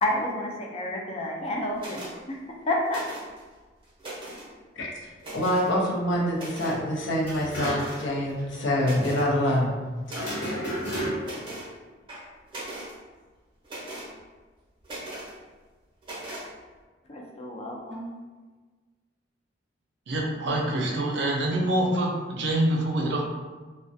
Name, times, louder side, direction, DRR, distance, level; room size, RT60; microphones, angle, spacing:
voice 1, 0.0-2.0 2.3-3.1 17.0-18.1, left 1 dB, 35° left, -1 dB, 0.4 m, -30 dB
sound 1, 1.8-2.1 2.9-3.4 3.8-4.5 5.2-5.7 6.3-6.8 7.6-8.1 8.5-8.6 8.8-9.3 10.0-10.4 11.2-11.7 12.1-12.9 13.6-14.1 14.8-15.3 16.0-16.5, right 1 dB, 30° right, 0.6 m, -39 dB
voice 2, 5.3-9.7, equal, 85° left, -2 dB, 0.6 m, -25 dB
sound 2, 7.2-8.1 8.4-8.5 10.1-11.5, equal, 65° left, 1.0 m, -32 dB
voice 3, 20.1-23.2, right 1 dB, 70° right, 0 dB, 0.5 m, -25 dB
2.3 x 2.1 x 2.6 m, 1.3 s
head